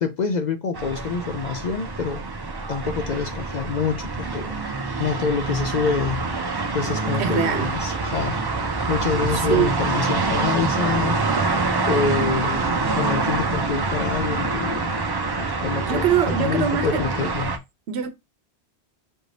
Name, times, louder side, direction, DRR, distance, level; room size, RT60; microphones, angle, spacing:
voice 1, 0.0-2.2 2.7-4.5 5.0-6.3 6.7-8.4 8.9-11.2 11.9-15.0 15.4-16.0 16.4-17.6, left 5 dB, 55° left, 0.5 m, -26 dB
sound 1, 0.7-17.6, right 3 dB, 35° right, 0.4 m, -26 dB
voice 2, 7.2-7.7 9.1-9.8 15.7-17.3 17.9-18.1, right 8 dB, 75° right, 0.9 m, -24 dB
6.1 x 2.6 x 3.2 m
omnidirectional pair, 1.1 m